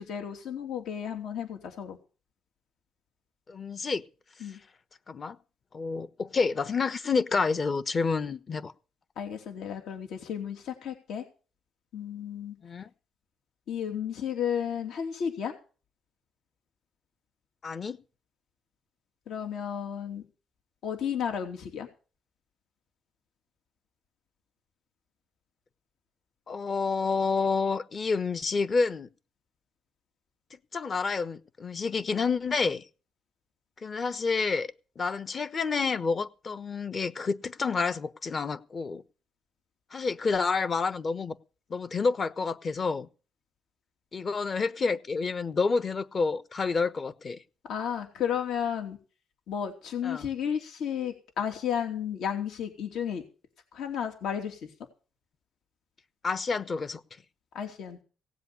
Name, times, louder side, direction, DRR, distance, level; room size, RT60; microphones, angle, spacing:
voice 1, 0.0-2.0 4.4-4.6 9.2-11.2 11.9-12.5 13.7-15.5 19.3-20.2 20.8-21.9 47.7-49.0 49.5-53.2 53.7-54.7 57.5-58.0, left 8 dB, 80° left, 2.9 m, -33 dB
voice 2, 3.5-4.0 5.1-5.4 5.7-8.7 12.6-12.9 17.6-18.0 26.5-29.1 30.7-32.8 33.8-34.7 35.0-39.0 39.9-41.4 41.7-43.1 44.1-47.4 50.0-50.3 56.2-57.0, left 4 dB, 40° left, 1.1 m, -29 dB
17.5 x 7.8 x 7.0 m
cardioid pair, 90°, 0 cm